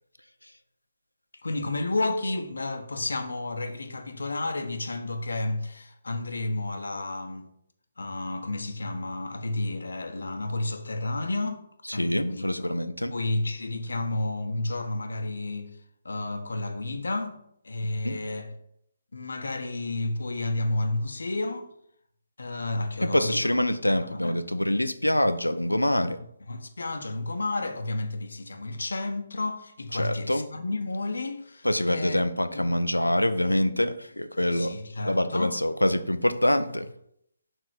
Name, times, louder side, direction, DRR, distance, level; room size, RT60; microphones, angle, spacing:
voice 1, 1.3-7.5 8.0-11.6 11.9-12.7 13.1-15.8 16.0-18.5 19.1-21.7 22.4-23.5 24.0-24.4 26.5-32.2 32.5-32.7 34.5-35.6, left 2 dB, 70° left, 0.9 m, -31 dB
voice 2, 11.9-13.1 18.0-18.2 23.0-26.2 29.9-30.5 31.6-34.7 35.0-36.9, left 1 dB, 90° left, 0.5 m, -25 dB
6.3 x 3.7 x 4.9 m
figure-of-eight pair, 140°, 0 cm